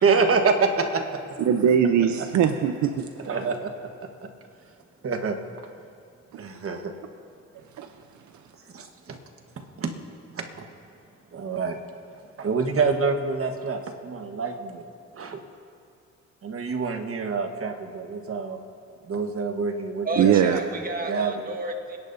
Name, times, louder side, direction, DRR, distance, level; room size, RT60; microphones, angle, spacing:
voice 1, 0.0-1.2 2.2-2.3 3.3-3.9 4.2-4.3 5.0-5.4 6.4-6.9 8.7-9.2 9.6-9.9 10.3-10.7 11.3-11.8 12.4-14.8 15.1-15.4 16.4-18.6 19.1-20.4 21.0-21.4, right 4 dB, 45° right, 5 dB, 1.3 m, -26 dB
voice 2, 1.4-3.1 6.3-6.4 7.8-7.9 20.2-20.6, right 8 dB, 70° right, 7 dB, 0.7 m, -21 dB
voice 3, 20.0-22.0, right 2 dB, 30° right, 3 dB, 1.5 m, -31 dB
27.0 x 10.5 x 2.7 m, 2.4 s
cardioid pair, 90°, 30 cm